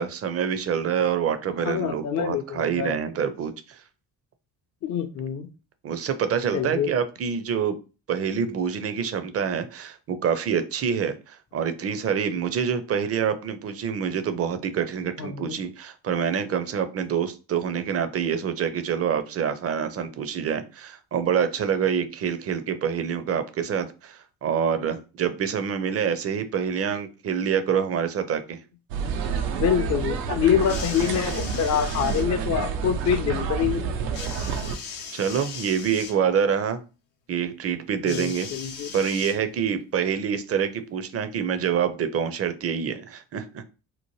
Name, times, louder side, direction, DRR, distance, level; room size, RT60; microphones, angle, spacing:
voice 1, 0.0-3.8 5.8-7.8 8.1-28.6 35.1-36.8 37.3-38.5 38.9-43.6, right 7 dB, 30° right, 10 dB, 0.5 m, -26 dB
voice 2, 1.7-3.0 4.8-5.5 6.5-6.9 15.2-15.5 29.3-33.8 38.0-38.9, left 8 dB, 40° left, 5 dB, 0.4 m, -25 dB
sound 1, 28.9-34.8, right 6 dB, 80° right, 0.5 m, -29 dB
sound 2, 30.6-32.3 34.1-36.2 38.1-39.8 40.7-40.8, left 6 dB, 80° left, 0.7 m, -38 dB
2.9 x 2.1 x 3.0 m, 0.33 s
hypercardioid pair, 45°, 49 cm